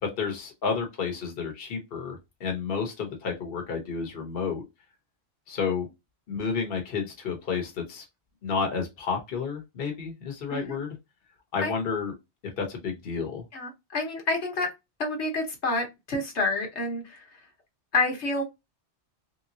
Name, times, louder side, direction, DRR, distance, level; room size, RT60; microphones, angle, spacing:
voice 1, 0.0-4.6 5.5-5.9 6.3-8.0 8.4-11.0 11.5-12.1 12.6-13.4, left 5 dB, 55° left, 1.1 m, -31 dB
voice 2, 13.5-14.7 15.0-17.2 17.9-18.4, left 2 dB, 75° left, 1.4 m, -28 dB
3.4 x 3.0 x 2.6 m
omnidirectional pair, 1.2 m